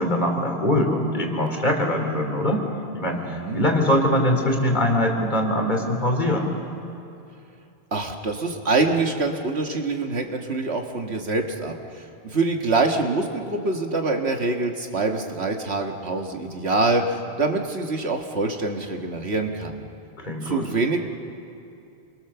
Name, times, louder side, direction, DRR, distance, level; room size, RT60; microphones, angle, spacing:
voice 1, 0.0-2.7 2.9-6.5 20.2-20.7, left 1 dB, 45° left, 2 dB, 3.3 m, -22 dB
voice 2, 3.0-3.6 7.9-19.8 20.4-21.0, right 3 dB, 85° right, 3 dB, 1.9 m, -25 dB
28.0 x 22.0 x 7.0 m, 2.6 s
omnidirectional pair, 1.1 m